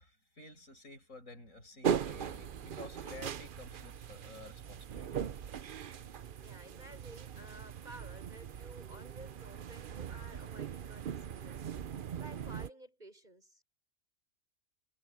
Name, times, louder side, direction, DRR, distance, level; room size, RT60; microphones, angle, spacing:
voice 1, 0.0-6.6 9.4-9.5, left 2 dB, 75° left, 7.8 m, -53 dB
sound 1, 1.8-12.7, right 8 dB, 50° right, 0.7 m, -40 dB
voice 2, 6.4-13.6, right 1 dB, 35° right, 6.8 m, -54 dB
omnidirectional pair, 1.4 m